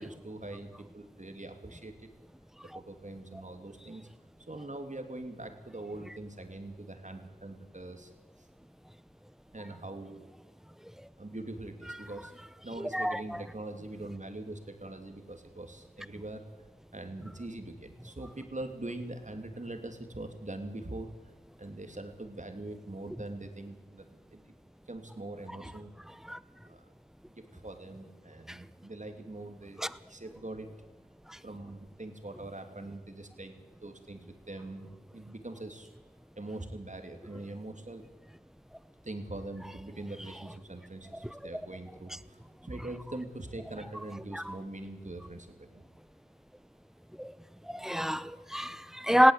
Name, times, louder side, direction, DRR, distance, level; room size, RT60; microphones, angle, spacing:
voice 1, 0.0-2.1 2.7-4.1 4.5-8.1 8.4-8.5 9.5-10.2 11.2-12.3 12.6-16.4 16.9-21.3 21.6-24.4 24.9-25.9 26.6-26.9 27.3-29.8 30.1-30.7 31.4-35.9 36.4-38.0 39.0-45.8, right 2 dB, 45° right, 2.9 m, -43 dB
voice 2, 12.8-13.4 26.3-26.4 28.5-28.6 29.8-29.9 31.3-31.4 41.2-41.4 44.3-44.6 47.2-47.3 47.7-49.3, equal, ahead, 0.9 m, -28 dB
18.5 x 17.0 x 8.3 m
wide cardioid pair, 40°, 17 cm